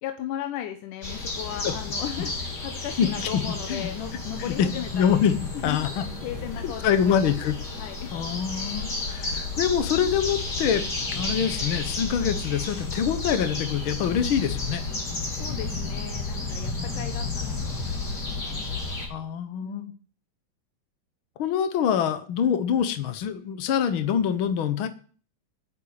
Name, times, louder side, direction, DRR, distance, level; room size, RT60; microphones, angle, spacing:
voice 1, 0.0-5.2 5.5-7.3 7.7-8.1 15.3-18.7 19.6-20.0, left 11 dB, 75° left, 7 dB, 2.4 m, -36 dB
sound 1, 1.0-19.1, left 3 dB, 30° left, 3.5 m, -32 dB
voice 2, 4.9-5.4 5.6-6.0 6.6-7.5 8.1-14.8 19.1-19.9 21.4-24.9, left 8 dB, 90° left, 10 dB, 1.1 m, -25 dB
10.0 x 8.9 x 8.7 m, 0.42 s
omnidirectional pair, 3.9 m